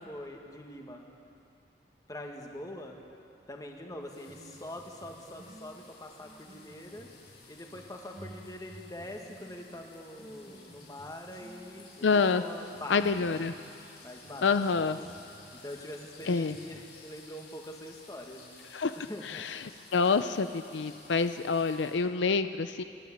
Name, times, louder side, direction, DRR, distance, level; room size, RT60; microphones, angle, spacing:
voice 1, 0.1-1.0 2.1-3.0 3.5-7.1 7.5-13.4 14.0-14.5 15.6-18.6 19.0-19.4, left 1 dB, 20° left, 2 dB, 1.7 m, -44 dB
sound 1, 3.9-16.8, equal, 25° right, 1.4 m, -53 dB
sound 2, 4.0-22.0, left 4 dB, 55° left, 7.0 m, -55 dB
voice 2, 12.0-12.4 12.9-13.5 14.4-15.0 16.3-16.6 18.7-19.0 19.2-19.6 19.9-22.8, left 4 dB, 75° left, 10 dB, 0.5 m, -27 dB
26.5 x 11.5 x 8.6 m, 2.6 s
head